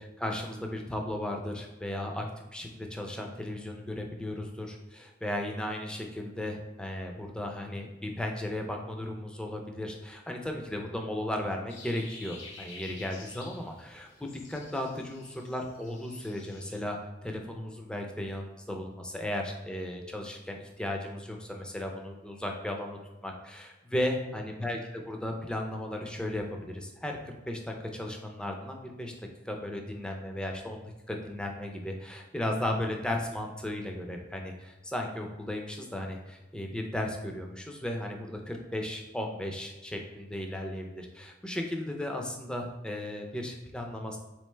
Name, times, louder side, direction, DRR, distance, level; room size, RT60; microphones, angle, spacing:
voice 1, 0.0-24.8 25.1-29.1 29.4-44.2, left 1 dB, 5° left, 2 dB, 0.4 m, -35 dB
sound 1, 11.7-16.8, left 2 dB, 85° left, 0.9 m, -50 dB
3.8 x 3.1 x 3.2 m, 1.1 s
head